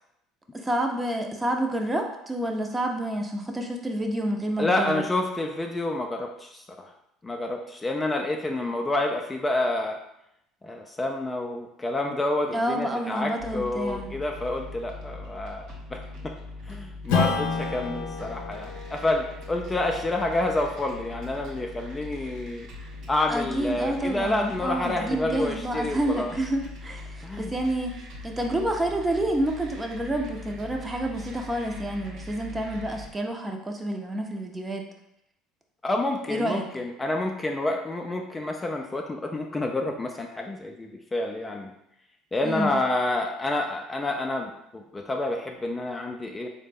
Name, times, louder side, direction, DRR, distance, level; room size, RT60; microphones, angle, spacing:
voice 1, 0.5-5.1 12.5-14.1 23.3-34.8 36.3-36.7 42.4-42.8, right 1 dB, 20° right, 2 dB, 0.6 m, -29 dB
voice 2, 4.6-6.9 7.2-10.0 10.6-16.3 16.6-22.7 23.1-26.4 27.2-27.5 35.8-41.7 42.3-46.5, left 2 dB, 20° left, 2 dB, 0.4 m, -28 dB
sound 1, 13.4-33.1, left 2 dB, 60° right, 0.8 m, -41 dB
Strum, 17.1-22.0, left 5 dB, 75° left, 0.5 m, -32 dB
3.9 x 2.1 x 3.4 m, 0.80 s
hypercardioid pair, 70°, 0 cm